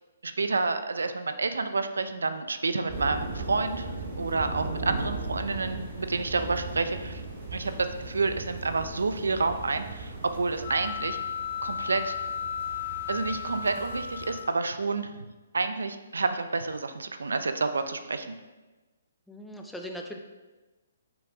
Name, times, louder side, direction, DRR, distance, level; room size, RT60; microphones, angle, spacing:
voice 1, 0.2-7.2 7.5-7.7 8.0-11.2 11.6-12.1 13.1-15.1 15.5-18.3, right 3 dB, 85° right, 9 dB, 0.5 m, -29 dB
sound 1, 2.9-14.4, right 2 dB, 40° right, 2.0 m, -38 dB
sound 2, 10.6-14.7, left 8 dB, 50° left, 0.9 m, -35 dB
voice 2, 19.3-20.2, equal, 5° left, 2 dB, 0.5 m, -39 dB
6.0 x 5.2 x 3.5 m, 1.2 s
hypercardioid pair, 145°, 0 cm